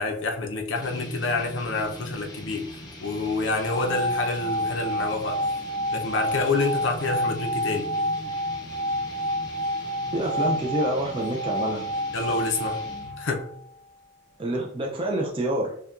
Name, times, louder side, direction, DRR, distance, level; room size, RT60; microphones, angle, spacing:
voice 1, 0.0-2.7 3.0-5.4 5.9-7.9 12.1-12.9 13.2-13.5, left 3 dB, 65° left, 3 dB, 0.6 m, -27 dB
sound 1, 0.8-13.3, equal, 20° left, 0.6 m, -41 dB
sound 2, 3.6-13.7, equal, 60° right, 1.0 m, -29 dB
voice 2, 10.1-11.8 14.4-15.7, right 1 dB, 25° right, -2 dB, 0.4 m, -27 dB
5.6 x 2.3 x 2.4 m, 0.67 s
head